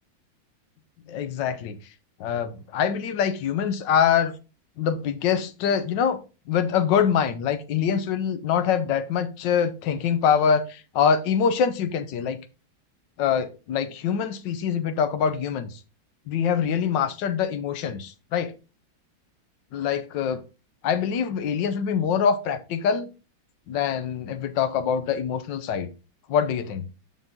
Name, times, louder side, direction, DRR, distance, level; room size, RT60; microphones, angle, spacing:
voice 1, 1.1-1.8 2.2-4.3 4.8-6.2 6.5-12.4 13.2-15.7 16.3-18.5 19.7-20.4 20.8-23.1 23.7-25.9 26.3-26.8, left 7 dB, 70° left, 11 dB, 1.4 m, -24 dB
7.1 x 6.1 x 3.7 m, 0.32 s
omnidirectional pair, 2.1 m